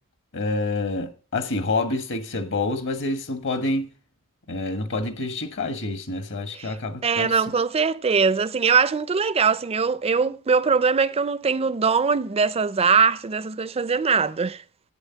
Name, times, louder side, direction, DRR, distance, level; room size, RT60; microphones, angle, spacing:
voice 1, 0.3-3.9 4.5-7.3, left 2 dB, 55° left, 1.3 m, -27 dB
voice 2, 7.0-14.6, right 5 dB, 25° right, 0.4 m, -21 dB
11.5 x 8.6 x 5.7 m
head